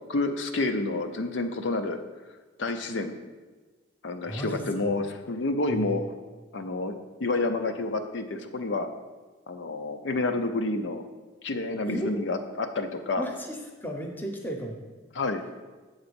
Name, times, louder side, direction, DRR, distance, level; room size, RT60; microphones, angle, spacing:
voice 1, 0.1-2.0 2.6-3.1 4.0-6.0 6.5-6.9 7.2-8.9 9.5-11.0 11.4-13.2 15.1-15.4, left 2 dB, 75° left, 6 dB, 0.6 m, -29 dB
voice 2, 4.3-4.9 5.7-6.0 11.9-12.2 13.2-14.8, right 1 dB, 10° left, 2 dB, 0.8 m, -34 dB
8.0 x 3.9 x 6.9 m, 1.3 s
head